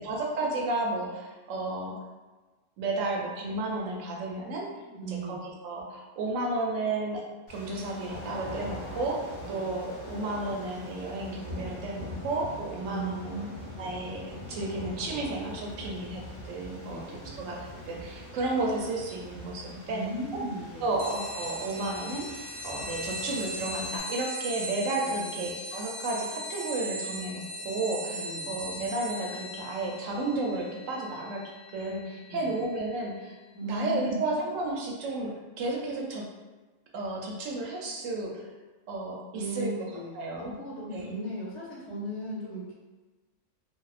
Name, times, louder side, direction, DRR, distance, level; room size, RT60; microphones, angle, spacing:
voice 1, 0.0-2.0 2.8-4.7 5.1-7.2 7.5-13.4 13.8-17.6 17.9-20.4 20.8-33.3 33.6-36.3 36.9-38.4 38.9-39.9 40.1-40.5 40.9-41.1, right 2 dB, 90° right, -1 dB, 1.0 m, -33 dB
voice 2, 4.8-5.4 9.5-9.8 12.8-13.6 16.5-17.3 19.9-20.9 25.0-25.4 28.0-28.5 32.2-32.5 33.5-34.2 39.3-42.7, right 1 dB, 70° left, -5 dB, 1.0 m, -37 dB
sound 1, 7.5-24.0, equal, 35° left, 0.8 m, -43 dB
sound 2, 21.0-33.1, right 1 dB, 60° right, 0.6 m, -39 dB
2.6 x 2.0 x 2.3 m, 1.2 s
omnidirectional pair, 1.3 m